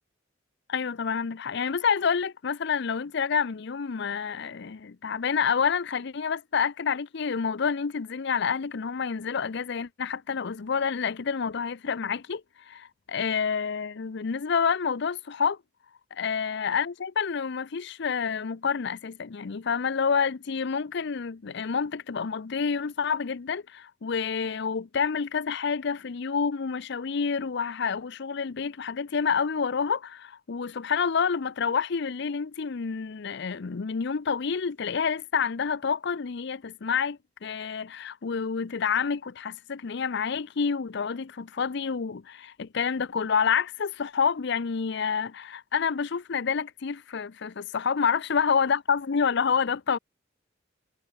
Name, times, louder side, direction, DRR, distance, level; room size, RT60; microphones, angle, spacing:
voice 1, 0.7-15.6 16.1-50.0, left 6 dB, 60° left, 0.6 m, -28 dB
head